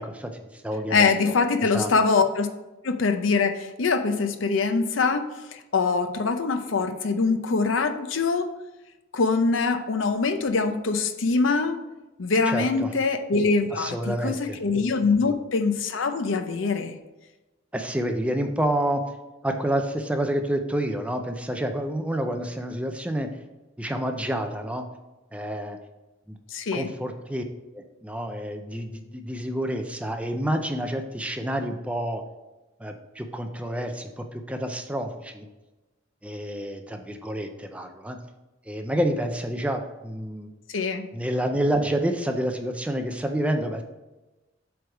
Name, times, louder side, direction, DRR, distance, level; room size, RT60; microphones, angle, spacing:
voice 1, 0.0-1.3 1.7-1.9 12.5-12.9 13.7-14.6 15.1-15.3 17.7-19.0 19.4-23.3 23.8-24.8 25.3-25.8 26.3-26.4 26.7-27.4 27.7-32.2 32.8-35.5 36.2-38.2 38.7-40.5 41.1-43.8, right 1 dB, 5° right, 5 dB, 0.5 m, -28 dB
voice 2, 0.9-2.5 2.8-8.5 9.1-11.8 12.2-17.0 26.5-26.9 40.7-41.1, left 4 dB, 75° left, 7 dB, 0.6 m, -24 dB
7.8 x 3.4 x 4.5 m, 1.1 s
head